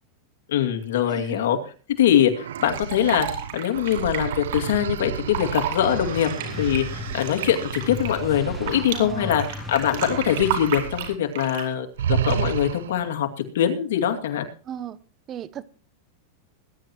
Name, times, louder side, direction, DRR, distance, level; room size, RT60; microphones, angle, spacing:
voice 1, 0.5-1.6 2.0-3.3 3.5-6.3 6.6-13.3 13.5-14.5, left 10 dB, 75° left, 2.4 m, -23 dB
voice 2, 1.1-1.4 8.9-9.3 14.6-15.0 15.3-15.6, right 10 dB, 30° right, 0.9 m, -35 dB
sound 1, 2.3-9.5 9.9-11.2 11.4-11.6 12.0-13.1, right 9 dB, 85° right, 0.5 m, -32 dB
Fill (with liquid), 2.6-4.6 5.2-5.8 6.1-9.0 9.3-11.7 12.2-12.6, right 10 dB, 65° right, 4.7 m, -32 dB
sound 2, 5.8-11.0, left 3 dB, 10° left, 3.5 m, -36 dB
20.5 x 11.0 x 3.0 m
supercardioid pair, 135°, 0 cm